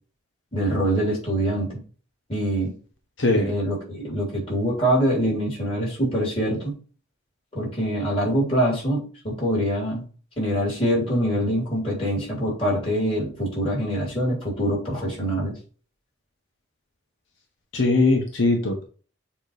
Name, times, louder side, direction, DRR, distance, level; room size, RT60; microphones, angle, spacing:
voice 1, 0.5-1.8 2.3-2.7 3.3-6.7 7.5-10.1 10.4-15.6, equal, 30° left, -4 dB, 3.6 m, -24 dB
voice 2, 3.2-3.5 17.7-18.8, left 2 dB, 75° left, 2 dB, 1.2 m, -20 dB
7.3 x 3.1 x 5.0 m, 0.39 s
head